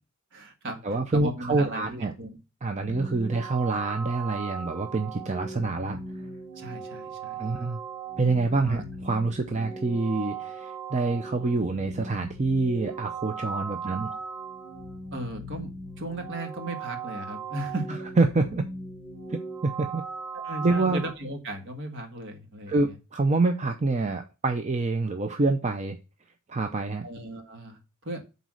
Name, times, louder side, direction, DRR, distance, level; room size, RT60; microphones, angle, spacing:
voice 1, 0.3-2.4 6.5-7.6 8.7-8.8 13.8-14.2 15.1-15.7 16.0-18.0 20.3-23.0 27.0-28.2, right 1 dB, 60° right, 5 dB, 1.7 m, -37 dB
voice 2, 0.8-2.1 2.6-6.0 7.4-7.8 8.2-14.2 18.2-18.6 19.3-20.0 20.6-21.0 22.7-26.0 26.5-27.1, right 3 dB, 35° right, 6 dB, 0.6 m, -26 dB
sound 1, 2.8-21.1, right 4 dB, 5° right, 1.7 m, -38 dB
7.9 x 4.1 x 6.3 m, 0.30 s
head